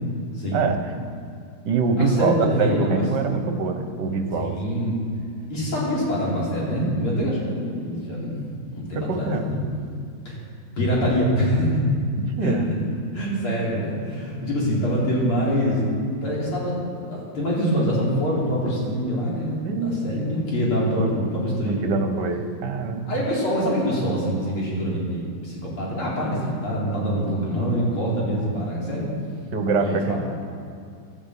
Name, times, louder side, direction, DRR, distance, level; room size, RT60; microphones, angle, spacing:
voice 1, 0.5-1.1 1.6-4.6 8.9-9.4 12.4-12.7 19.6-20.1 21.0-21.1 21.6-23.1 29.5-30.2, right 4 dB, 60° right, 6 dB, 1.6 m, -24 dB
voice 2, 2.0-3.3 4.3-5.0 5.5-8.4 8.7-9.6 10.2-10.4 10.8-11.9 12.4-12.8 13.1-15.9 16.2-21.9 23.1-29.1 29.8-30.2, equal, 85° left, -6 dB, 4.7 m, -25 dB
12.5 x 11.5 x 8.3 m, 2.4 s
omnidirectional pair, 2.3 m